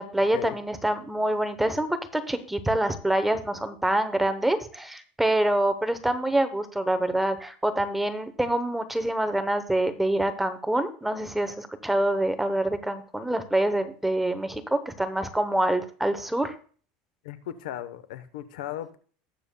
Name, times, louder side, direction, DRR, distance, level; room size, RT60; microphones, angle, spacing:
voice 1, 0.0-16.5, right 1 dB, 5° right, 9 dB, 0.8 m, -26 dB
voice 2, 17.2-19.0, left 12 dB, 90° left, 12 dB, 0.8 m, -36 dB
19.0 x 6.9 x 2.2 m, 0.43 s
supercardioid pair, 135°, 4 cm